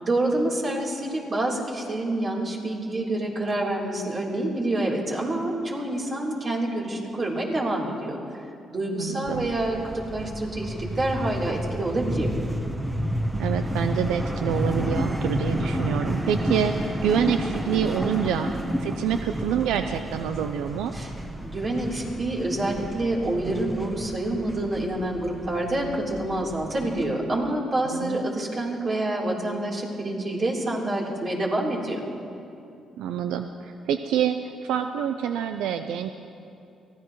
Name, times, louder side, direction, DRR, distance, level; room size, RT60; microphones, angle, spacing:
voice 1, 0.0-8.2 8.7-12.3 20.9-21.1 21.4-32.0, right 1 dB, 40° right, -3 dB, 3.7 m, -27 dB
voice 2, 9.0-9.5 13.4-18.5 18.8-20.9 27.9-28.2 33.0-36.1, right 9 dB, 90° right, 8 dB, 0.5 m, -27 dB
sound 1, 9.3-27.0, equal, 10° right, 1.2 m, -31 dB
23.5 x 16.5 x 3.2 m, 2.8 s
cardioid pair, 90°, 0 cm